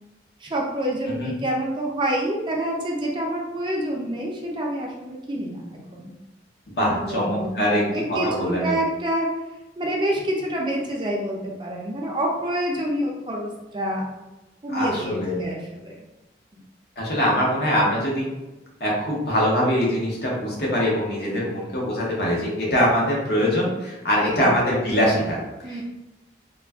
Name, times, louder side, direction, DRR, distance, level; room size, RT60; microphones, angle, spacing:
voice 1, 0.4-5.6 5.9-6.1 6.8-9.3 9.8-14.1 14.6-16.0 24.2-24.4 25.6-25.8, right 1 dB, 25° right, -2 dB, 0.4 m, -27 dB
voice 2, 6.7-7.8 8.1-8.8 14.7-15.3 17.0-18.3 18.8-25.8, equal, 65° left, -4 dB, 0.9 m, -23 dB
2.3 x 2.1 x 3.4 m, 1.0 s
head